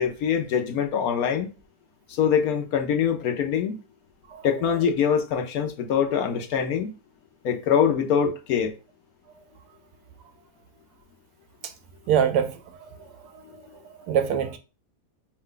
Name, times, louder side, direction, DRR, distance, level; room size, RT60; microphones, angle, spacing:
voice 1, 0.0-1.5 2.2-3.8 4.4-7.0 7.4-8.8, left 7 dB, 70° left, 1.0 m, -24 dB
voice 2, 12.1-12.9 13.3-13.4 13.8-14.6, right 8 dB, 75° right, 1.1 m, -24 dB
4.7 x 2.2 x 3.7 m
omnidirectional pair, 1.8 m